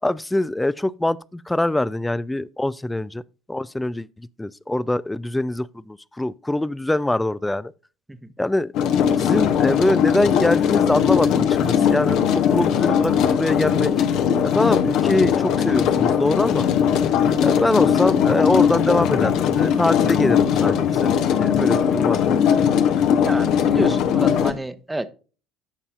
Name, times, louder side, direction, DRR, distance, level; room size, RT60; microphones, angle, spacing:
voice 1, 0.0-3.2 3.5-7.7 8.4-8.7 9.2-13.9 14.5-16.7 17.4-21.1 21.4-22.7, left 1 dB, 10° left, 0.4 m, -23 dB
sound 1, 8.7-24.5, left 8 dB, 55° left, 0.9 m, -19 dB
voice 2, 23.2-25.1, right 1 dB, 10° right, 0.9 m, -30 dB
14.5 x 5.5 x 2.5 m
hypercardioid pair, 65°, 0 cm